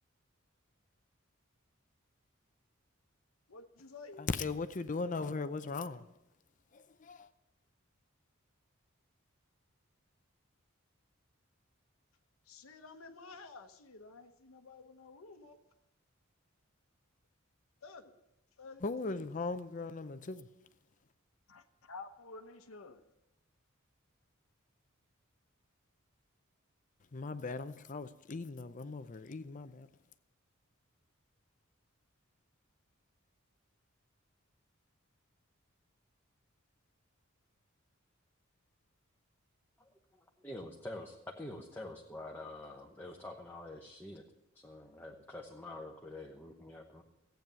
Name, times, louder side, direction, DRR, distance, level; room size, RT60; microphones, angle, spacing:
voice 1, 3.5-4.2 12.5-15.6 17.8-18.1 18.6-18.8 19.1-19.3 21.5-23.0, left 3 dB, 90° left, 1.0 m, -51 dB
voice 2, 4.2-6.1 6.7-7.3 18.8-20.5 27.1-29.9, left 3 dB, 40° left, 0.6 m, -38 dB
voice 3, 40.4-44.2 44.5-47.0, left 1 dB, 10° left, 1.0 m, -46 dB
14.5 x 9.2 x 6.9 m
head